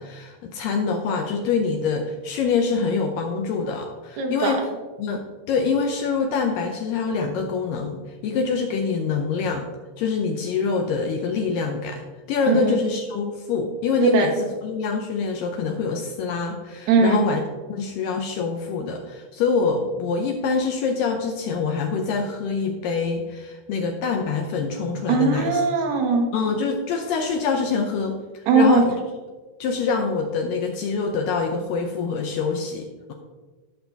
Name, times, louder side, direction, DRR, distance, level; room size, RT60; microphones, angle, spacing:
voice 1, 0.0-4.6 5.0-9.7 10.0-12.0 12.3-17.4 17.7-25.6 26.3-28.9 29.6-33.1, left 5 dB, 85° left, 3 dB, 1.9 m, -25 dB
voice 2, 4.2-4.6 12.5-12.8 14.0-14.3 16.9-17.3 25.1-26.3 28.5-28.8, right 4 dB, 65° right, 2 dB, 1.9 m, -19 dB
13.0 x 5.8 x 3.4 m, 1.3 s
omnidirectional pair, 4.8 m